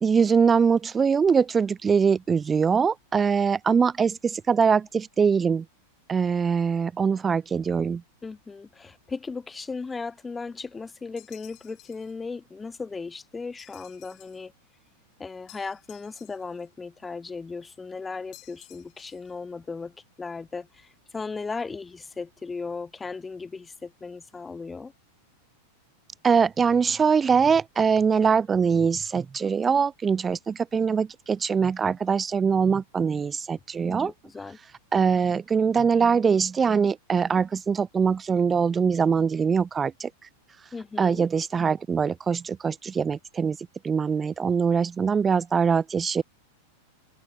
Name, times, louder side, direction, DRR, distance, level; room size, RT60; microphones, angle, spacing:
voice 1, 0.0-5.7 6.1-8.0 26.2-34.1 34.9-40.1 41.0-43.6 43.8-46.2, right 6 dB, 20° right, 0.6 m, -23 dB
voice 2, 8.2-14.5 15.2-24.9 33.8-34.6 40.7-41.2, left 4 dB, 15° left, 2.7 m, -37 dB
sound 1, 11.2-12.1 13.6-14.5 15.5-16.7 18.3-19.3, left 20 dB, 40° left, 7.2 m, -53 dB
figure-of-eight pair, 90°, 0 cm